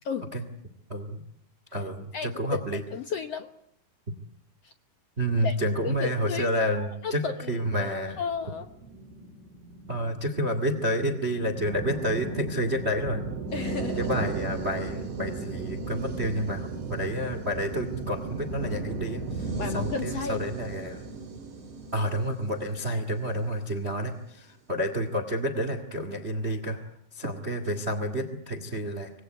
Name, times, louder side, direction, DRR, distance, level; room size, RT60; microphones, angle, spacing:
voice 1, 0.9-1.2 1.7-2.8 5.2-8.2 9.9-13.2 14.0-21.0 21.9-26.8 27.1-29.1, equal, 25° right, 11 dB, 1.3 m, -29 dB
voice 2, 2.1-2.6 2.9-3.5 4.6-4.7 5.4-5.6 5.8-6.5 6.7-7.9 8.2-8.7 13.5-14.0 19.5-20.4, left 6 dB, 75° left, 8 dB, 1.4 m, -33 dB
sound 1, 8.1-23.6, right 4 dB, 55° right, 4.6 m, -36 dB
26.0 x 20.5 x 9.3 m, 0.73 s
omnidirectional pair, 4.6 m